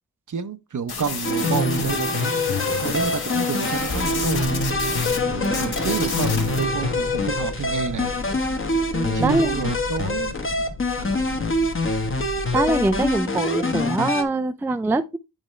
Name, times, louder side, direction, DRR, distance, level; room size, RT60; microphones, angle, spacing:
voice 1, 0.3-4.6 5.3-8.2 9.1-10.4 11.0-11.3, right 6 dB, 55° right, 0.7 m, -29 dB
sound 1, 0.9-5.2 5.4-6.6, left 5 dB, 90° left, 1.4 m, -31 dB
sound 2, 1.2-14.2, left 2 dB, 35° left, 1.0 m, -25 dB
sound 3, 3.7-13.2, left 2 dB, 65° left, 1.5 m, -35 dB
voice 2, 8.9-9.7 12.5-15.2, right 2 dB, 5° right, 0.3 m, -23 dB
8.9 x 4.3 x 3.1 m
wide cardioid pair, 90°, 37 cm